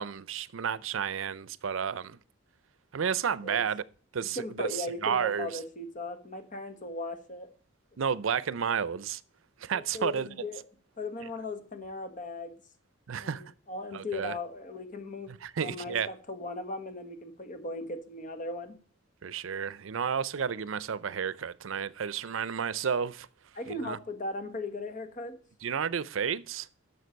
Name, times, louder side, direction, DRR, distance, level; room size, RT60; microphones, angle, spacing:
voice 1, 0.0-2.2 2.9-3.8 4.1-5.6 8.0-9.2 9.6-10.3 13.1-13.4 13.9-14.4 15.3-16.1 19.2-23.3 23.7-24.0 25.6-26.7, right 7 dB, 75° right, 0.5 m, -31 dB
voice 2, 4.3-7.5 9.7-10.6 11.0-12.5 13.2-15.3 15.6-18.7 23.5-25.4, left 2 dB, 40° left, 1.5 m, -38 dB
11.0 x 6.6 x 5.2 m
head